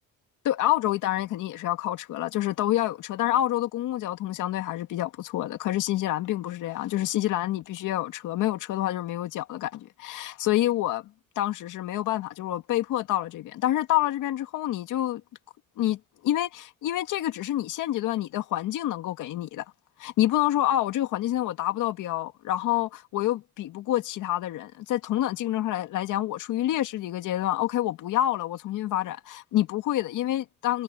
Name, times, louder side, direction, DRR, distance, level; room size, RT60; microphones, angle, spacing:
voice 1, 0.4-11.1 11.4-15.2 15.8-19.7 20.0-30.8, left 14 dB, 85° left, 2.1 m, -27 dB
cardioid pair, 90°, 30 cm